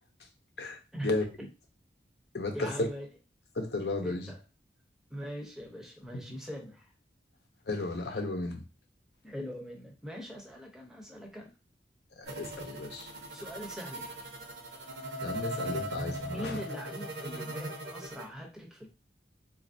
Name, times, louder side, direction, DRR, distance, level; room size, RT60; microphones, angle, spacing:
voice 1, 0.9-1.5 2.5-3.1 4.0-4.4 5.1-6.9 9.2-11.5 12.4-12.6 13.3-14.2 16.2-18.9, equal, 5° right, 0.7 m, -42 dB
voice 2, 2.3-2.9 3.6-4.3 6.1-6.2 7.7-8.6 12.2-13.1 15.2-16.6, left 2 dB, 65° left, 0.7 m, -33 dB
sound 1, 12.3-18.2, right 1 dB, 70° right, 0.9 m, -39 dB
4.0 x 2.5 x 2.6 m
head